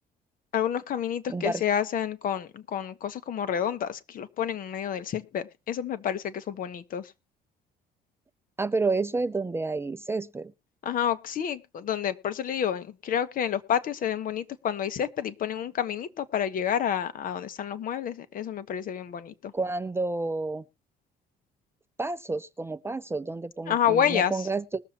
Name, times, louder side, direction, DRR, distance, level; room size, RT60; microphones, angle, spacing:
voice 1, 0.5-7.1 10.8-19.5 23.7-24.4, left 9 dB, 55° left, 1.1 m, -29 dB
voice 2, 1.3-1.6 8.6-10.5 19.5-20.6 22.0-24.8, right 3 dB, 15° right, 0.4 m, -30 dB
20.5 x 7.1 x 2.9 m
cardioid pair, 110°, 17 cm